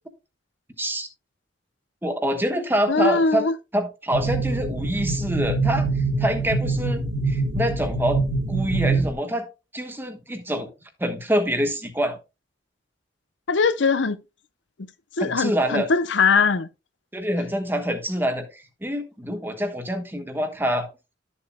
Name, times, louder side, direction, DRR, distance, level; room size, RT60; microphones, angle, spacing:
voice 1, 0.8-1.1 2.0-3.5 3.7-5.9 6.2-8.2 8.5-9.5 9.7-10.7 11.0-12.2 15.2-15.9 17.1-20.9, equal, 10° right, 1.2 m, -26 dB
voice 2, 2.9-3.5 13.5-14.2 15.2-16.7, left 4 dB, 80° left, 0.7 m, -21 dB
sound 1, 4.1-9.1, right 3 dB, 65° right, 1.5 m, -24 dB
12.5 x 7.2 x 2.2 m
head